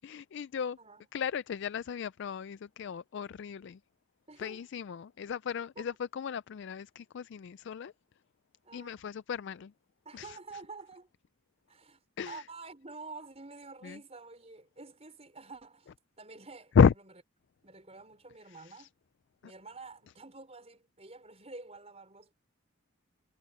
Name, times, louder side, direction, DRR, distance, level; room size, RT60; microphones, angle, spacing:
voice 1, 0.0-0.8 1.1-3.8 4.4-7.9 8.7-9.7 10.1-10.4 12.2-12.4 13.8-14.0 16.8-16.9 18.8-18.9, left 6 dB, 55° left, 0.3 m, -32 dB
voice 2, 4.3-4.6 5.8-5.9 8.6-9.1 10.1-11.1 11.7-15.9 16.2-16.9 17.6-18.9 19.4-22.3, right 3 dB, 30° right, 5.3 m, -49 dB
head